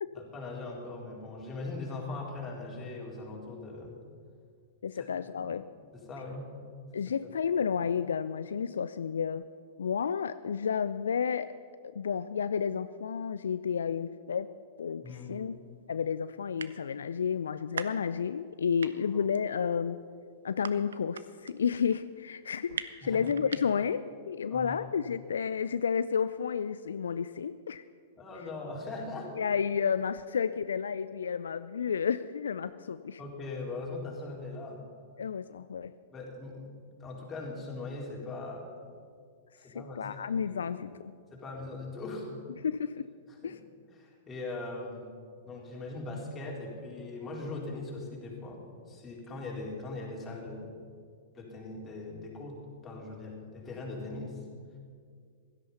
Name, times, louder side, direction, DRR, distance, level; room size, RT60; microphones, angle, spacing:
voice 1, 0.1-4.0 4.9-5.1 5.4-5.5 5.9-6.5 7.1-7.3 15.0-15.5 19.1-19.3 23.0-23.3 24.5-24.8 28.2-29.3 33.2-34.8 36.1-36.7 37.0-38.7 39.6-40.5 41.3-42.3 43.3-43.6 43.9-45.1 45.4-50.8 51.3-54.4, left 2 dB, 20° left, -3 dB, 4.0 m, -40 dB
voice 2, 4.8-5.6 6.9-9.5 9.8-11.5 11.8-14.5 14.8-15.6 15.9-20.0 20.4-27.8 29.4-33.2 35.2-35.9 39.7-41.1 42.6-43.0 43.4-43.6, left 7 dB, 70° left, 13 dB, 0.4 m, -31 dB
sound 1, 15.1-15.2 15.8-15.9 16.1-16.2 16.4-17.1 17.5-18.5 18.8-24.0, right 6 dB, 75° right, 0.7 m, -41 dB
16.0 x 12.5 x 5.7 m, 2.2 s
figure-of-eight pair, 105°, 0 cm